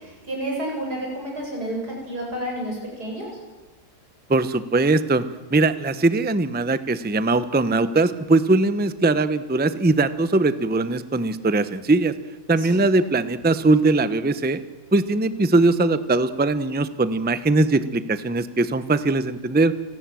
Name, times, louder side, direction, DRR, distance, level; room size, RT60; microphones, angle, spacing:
voice 1, 0.0-3.3 12.5-12.8, right 1 dB, 90° right, -1 dB, 8.7 m, -30 dB
voice 2, 4.3-5.2 5.5-12.1 12.5-14.6 14.9-19.7, right 2 dB, 10° right, 13 dB, 0.7 m, -20 dB
29.0 x 18.5 x 7.7 m, 1.2 s
omnidirectional pair, 1.6 m